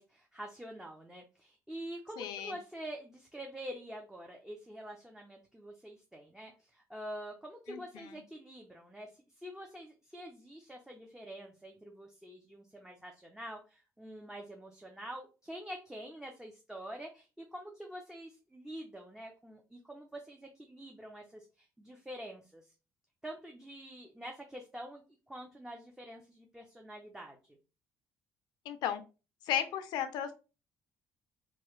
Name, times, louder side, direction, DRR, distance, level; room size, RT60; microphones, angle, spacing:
voice 1, 0.0-9.1 9.4-22.7 23.2-25.0 25.3-27.6, equal, 10° right, 1 dB, 0.7 m, -46 dB
voice 2, 2.2-2.6 7.7-8.2 28.7-29.0 29.5-30.3, left 10 dB, 75° left, 10 dB, 0.5 m, -35 dB
3.0 x 2.3 x 3.1 m, 0.32 s
supercardioid pair, 65°, 7 cm